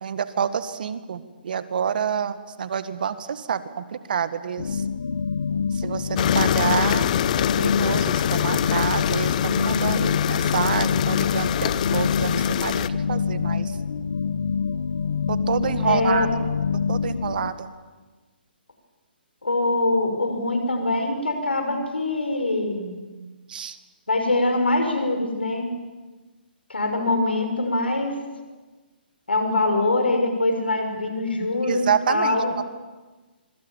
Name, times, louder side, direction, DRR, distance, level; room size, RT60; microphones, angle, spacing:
voice 1, 0.0-4.8 5.7-7.1 7.6-13.8 15.3-16.3 16.9-17.7 23.5-23.8 31.6-32.7, right 7 dB, 60° right, 12 dB, 1.8 m, -28 dB
sound 1, 4.6-17.5, left 6 dB, 70° left, 1.5 m, -26 dB
sound 2, 6.1-12.9, left 10 dB, 45° left, 0.8 m, -24 dB
voice 2, 15.8-16.3 19.4-22.9 24.1-25.7 26.7-28.2 29.3-32.5, left 2 dB, 90° left, 5 dB, 6.1 m, -23 dB
25.5 x 24.0 x 7.3 m, 1.3 s
hypercardioid pair, 135°, 6 cm